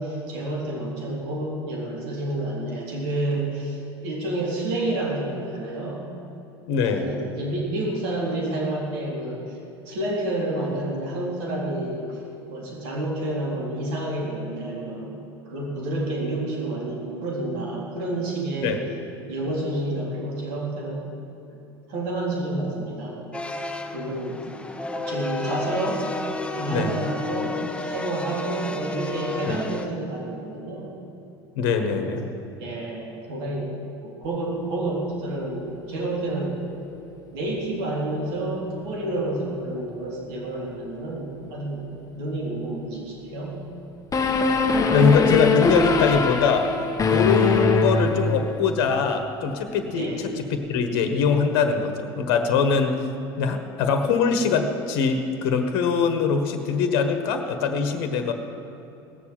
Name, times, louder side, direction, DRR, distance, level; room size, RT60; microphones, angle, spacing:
voice 1, 0.0-6.1 6.8-9.6 9.9-12.2 12.5-15.2 15.5-18.9 19.3-21.0 21.9-23.2 23.9-24.7 25.1-26.0 26.6-27.6 27.8-30.9 31.9-32.1 32.6-36.6 37.3-41.9 42.1-43.6 50.0-50.2, right 1 dB, 70° right, -3 dB, 3.9 m, -29 dB
voice 2, 6.7-7.1 18.6-18.8 26.7-27.0 29.4-29.6 31.5-32.3 44.9-46.7 47.1-50.4 50.7-53.0 53.4-58.3, left 5 dB, 70° left, 7 dB, 1.5 m, -22 dB
sound 1, 23.3-29.8, left 3 dB, 10° left, 1.3 m, -32 dB
sound 2, 44.1-48.8, left 3 dB, 25° left, 1.4 m, -22 dB
17.5 x 7.3 x 8.9 m, 2.9 s
hypercardioid pair, 80°, 13 cm